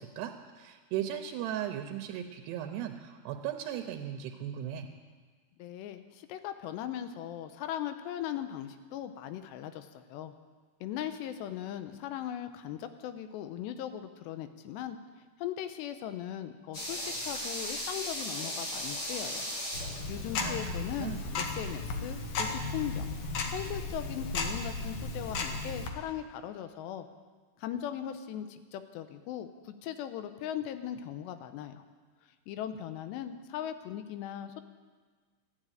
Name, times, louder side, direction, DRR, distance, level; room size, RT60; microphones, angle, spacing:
voice 1, 0.0-4.9 20.4-20.6 21.0-21.2, right 10 dB, 85° right, 6 dB, 2.9 m, -37 dB
voice 2, 5.6-10.3 10.8-15.0 15.4-19.5 20.1-23.1 23.5-27.1 27.6-31.8 32.5-34.7, left 10 dB, 90° left, 10 dB, 3.0 m, -39 dB
sound 1, 16.7-21.7 22.0-22.1, equal, 40° left, 2.4 m, -37 dB
Tick-tock, 19.7-25.9, left 3 dB, 70° left, 1.6 m, -35 dB
14.0 x 9.9 x 9.1 m, 1.5 s
omnidirectional pair, 4.8 m